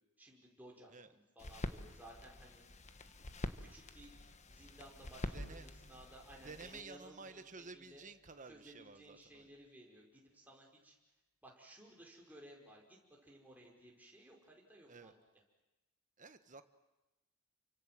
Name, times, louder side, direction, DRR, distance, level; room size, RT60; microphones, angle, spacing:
voice 1, 0.2-2.7 3.6-4.1 4.5-8.0 8.5-11.0 11.4-13.0 13.2-15.2, right 1 dB, 10° right, -1 dB, 5.3 m, -58 dB
sound 1, 1.4-6.8, left 1 dB, 30° left, 1.3 m, -46 dB
sound 2, 5.3-9.7, equal, 65° left, 2.0 m, -58 dB
voice 2, 5.3-6.0 6.4-9.5 14.9-15.1 16.2-16.6, right 4 dB, 35° right, 9 dB, 1.4 m, -53 dB
29.5 x 25.0 x 7.7 m, 1.0 s
head